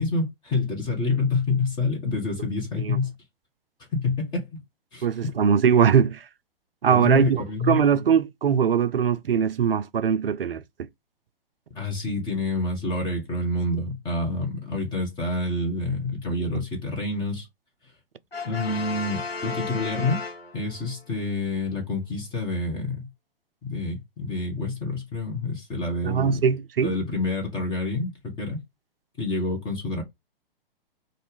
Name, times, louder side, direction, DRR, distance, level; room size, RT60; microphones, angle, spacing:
voice 1, 0.0-3.1 3.9-4.5 4.9-5.1 6.9-7.8 11.7-17.5 18.4-20.2 20.5-23.0 23.6-26.5 26.8-28.6 29.2-30.0, left 3 dB, 15° left, 1.0 m, -27 dB
voice 2, 5.0-6.2 6.8-10.9 26.0-26.9, right 7 dB, 70° right, 0.5 m, -21 dB
Brass instrument, 18.3-21.0, left 4 dB, 90° left, 0.8 m, -34 dB
4.1 x 2.5 x 3.2 m
figure-of-eight pair, 115°, 29 cm